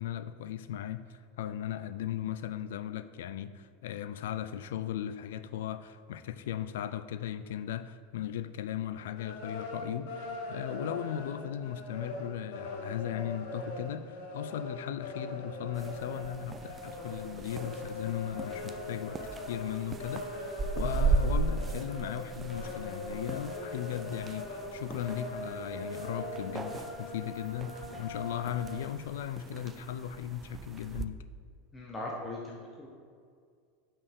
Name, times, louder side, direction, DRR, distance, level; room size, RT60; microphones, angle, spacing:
voice 1, 0.0-19.2 19.5-31.2, left 10 dB, 85° left, 0.4 m, -37 dB
sound 1, 9.1-28.8, left 2 dB, 70° left, 1.1 m, -41 dB
sound 2, 15.7-31.1, right 4 dB, 20° right, 0.3 m, -37 dB
voice 2, 31.7-32.9, left 1 dB, 15° left, 0.8 m, -39 dB
8.3 x 5.5 x 3.6 m
supercardioid pair, 150°, 0 cm